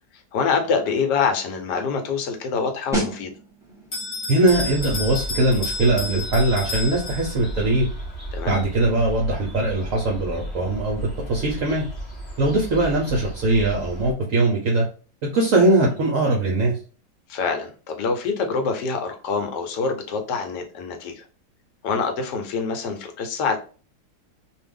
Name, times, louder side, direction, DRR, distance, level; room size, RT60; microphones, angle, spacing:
voice 1, 0.3-3.3 8.3-8.6 17.3-21.3 21.8-23.6, left 5 dB, 75° left, 5 dB, 1.2 m, -25 dB
sound 1, 2.9-13.4 13.7-14.0, right 1 dB, 5° right, 0.4 m, -38 dB
Bell, 3.9-7.6, left 2 dB, 50° left, 0.8 m, -32 dB
voice 2, 4.3-7.9 8.5-11.8 12.4-14.9 15.3-16.8, right 2 dB, 65° right, -1 dB, 0.8 m, -21 dB
sound 2, 4.4-14.1, right 1 dB, 20° left, 1.0 m, -34 dB
2.7 x 2.3 x 3.5 m, 0.37 s
omnidirectional pair, 1.9 m